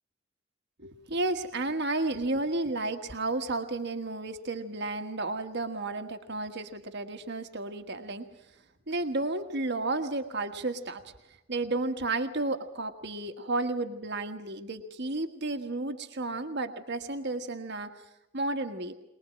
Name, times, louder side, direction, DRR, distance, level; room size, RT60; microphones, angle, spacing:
voice 1, 0.8-8.3 8.9-11.1 11.5-18.0 18.3-18.9, right 2 dB, 60° right, 7 dB, 1.5 m, -32 dB
22.5 x 21.0 x 7.5 m, 0.91 s
head